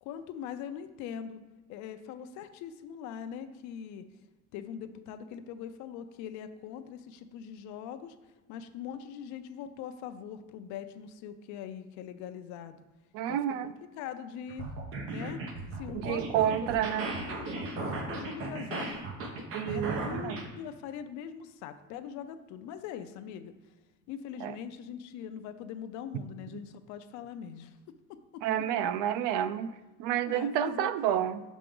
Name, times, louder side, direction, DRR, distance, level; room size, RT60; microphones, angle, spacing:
voice 1, 0.0-1.4 1.7-4.1 4.5-8.2 8.5-12.8 13.3-14.7 15.1-15.4 15.7-18.9 19.6-23.5 24.1-27.8 28.1-28.4 30.2-31.2, left 8 dB, 65° left, 10 dB, 0.5 m, -42 dB
voice 2, 13.1-13.7 15.9-17.1 19.5-20.4 24.4-24.6 28.4-31.4, right 10 dB, 75° right, 14 dB, 0.5 m, -30 dB
sound 1, 14.5-20.5, right 2 dB, 45° right, 0.9 m, -36 dB
6.8 x 5.1 x 3.7 m, 1.2 s
cardioid pair, 170°, 31 cm